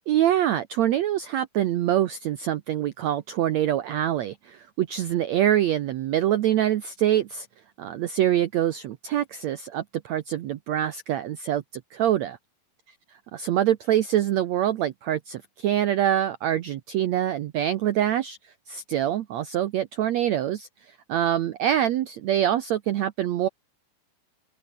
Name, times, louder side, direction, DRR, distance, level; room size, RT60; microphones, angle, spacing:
voice 1, 0.1-7.5 7.8-11.6 11.9-12.4 13.3-23.5, right 11 dB, 90° right, 1.5 m, -25 dB
open air
omnidirectional pair, 4.4 m